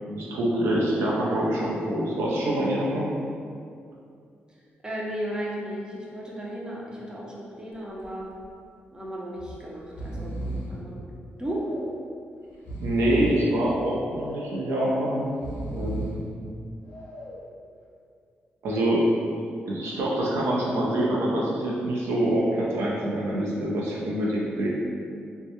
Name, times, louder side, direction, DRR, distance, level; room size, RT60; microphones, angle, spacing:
voice 1, 0.1-3.1 12.8-15.3 15.7-16.2 18.6-19.0 19.7-24.7, right 1 dB, 80° right, -5 dB, 0.4 m, -25 dB
voice 2, 4.8-8.3 8.9-11.0 11.4-11.7, equal, 20° right, -4 dB, 0.5 m, -35 dB
Breathing, 7.7-8.1 8.4-8.5 9.4-9.6 9.8-10.8 11.4-12.0 12.5-13.5 14.1-14.7 15.3-16.3 16.9-17.5, right 1 dB, 75° left, 0.5 m, -35 dB
2.1 x 2.0 x 2.8 m, 2.3 s
cardioid pair, 70°, 4 cm